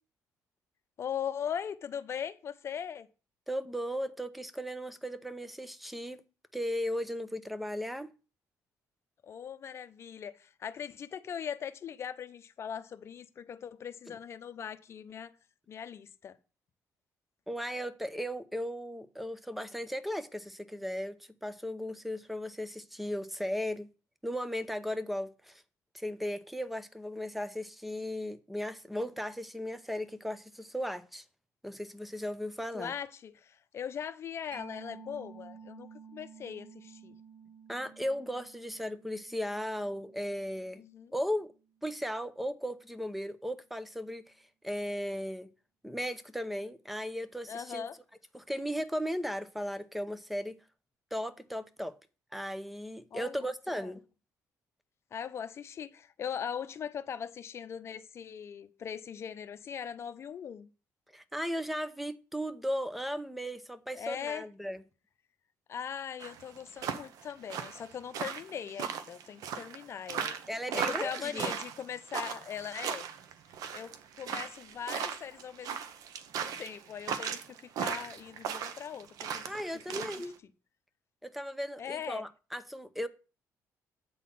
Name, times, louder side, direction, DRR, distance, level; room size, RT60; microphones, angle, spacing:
voice 1, 1.0-3.1 9.2-15.3 15.7-16.4 32.7-37.2 40.8-41.1 47.5-48.0 53.1-53.9 55.1-60.7 63.9-64.4 65.7-70.4 70.7-73.1 73.7-75.8 76.4-79.5 79.9-80.1 81.8-82.2, left 8 dB, 45° left, 0.7 m, -40 dB
voice 2, 3.5-6.2 6.5-8.1 14.1-14.2 17.5-21.2 21.4-23.9 24.2-25.6 25.9-31.2 31.6-32.9 37.7-40.8 41.1-41.5 41.8-44.2 44.6-45.5 45.8-47.9 48.3-50.6 51.1-51.9 52.3-54.0 61.1-64.8 70.5-71.5 79.5-80.3 81.2-83.1, equal, ahead, 0.7 m, -36 dB
Mallet percussion, 34.5-41.8, right 5 dB, 60° right, 5.1 m, -53 dB
sound 1, 66.2-80.3, right 7 dB, 75° right, 0.9 m, -37 dB
8.4 x 4.0 x 7.1 m
cardioid pair, 120°, 6 cm